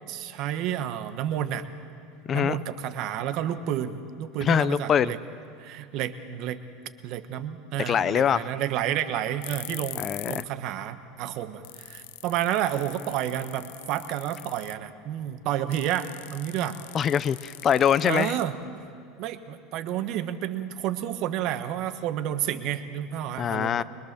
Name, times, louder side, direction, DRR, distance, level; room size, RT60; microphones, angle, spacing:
voice 1, 0.1-1.7 2.3-5.2 5.6-6.6 7.0-16.8 18.0-18.6 19.2-23.8, right 11 dB, 50° right, 10 dB, 1.2 m, -30 dB
voice 2, 4.4-5.1 7.9-8.5 10.0-10.4 16.9-18.3 23.4-23.8, left 8 dB, 30° left, 17 dB, 0.5 m, -23 dB
sound 1, 9.4-10.5 10.8-10.9 11.4-11.5 11.6-14.9 15.7-18.9, left 16 dB, 80° left, 0.5 m, -42 dB
24.0 x 21.5 x 6.8 m, 2.4 s
supercardioid pair, 140°, 0 cm